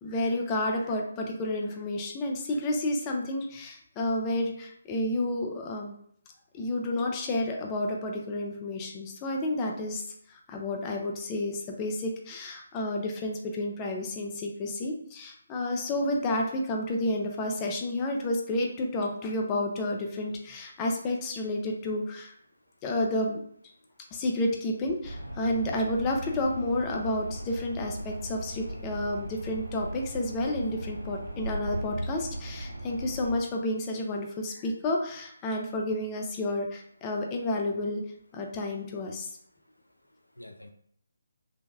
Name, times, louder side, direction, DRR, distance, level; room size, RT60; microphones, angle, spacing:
voice 1, 0.0-5.9 6.5-22.3 22.8-23.4 24.1-38.0 38.3-39.4, left 1 dB, 20° left, 1 dB, 0.4 m, -30 dB
voice 2, 23.8-24.2 39.7-40.7, left 1 dB, 90° left, 5 dB, 0.3 m, -52 dB
sound 1, 25.0-33.4, right 1 dB, 85° right, 0.5 m, -38 dB
3.2 x 2.1 x 2.4 m, 0.65 s
figure-of-eight pair, 145°, 0 cm